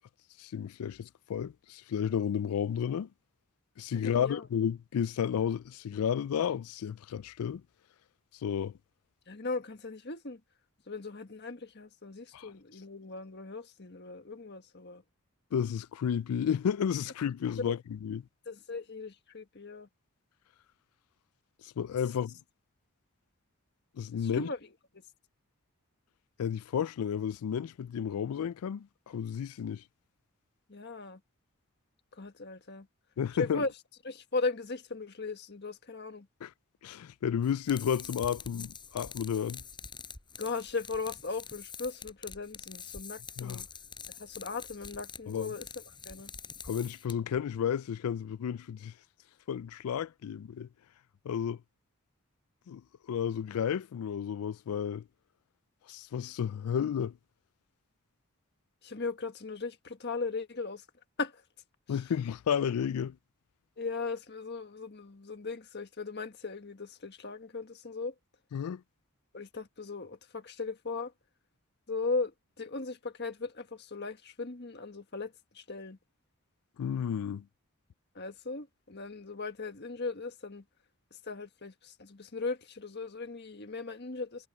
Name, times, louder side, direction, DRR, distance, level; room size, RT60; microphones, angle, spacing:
voice 1, 0.4-3.1 3.8-7.6 8.4-8.7 12.3-12.5 15.5-18.2 21.8-22.4 24.0-24.5 26.4-29.8 33.2-33.6 36.4-36.5 36.8-39.6 43.4-43.6 45.3-45.5 46.6-48.9 49.5-50.7 51.2-51.6 52.7-52.8 53.1-55.0 55.9-57.2 61.9-63.2 68.5-68.8 76.8-77.4, left 8 dB, 90° left, 0.4 m, -32 dB
voice 2, 3.9-4.5 9.3-10.4 10.9-15.0 17.6-17.7 18.5-19.9 24.2-24.6 30.7-31.2 32.2-32.9 33.4-33.7 34.0-36.3 40.4-43.7 44.2-45.7 46.0-46.3 58.8-60.8 61.2-61.3 63.8-68.1 69.3-71.1 71.9-76.0 78.1-80.6 81.3-84.5, left 3 dB, 50° left, 1.5 m, -38 dB
sound 1, 37.4-47.4, left 6 dB, 20° left, 6.4 m, -46 dB
head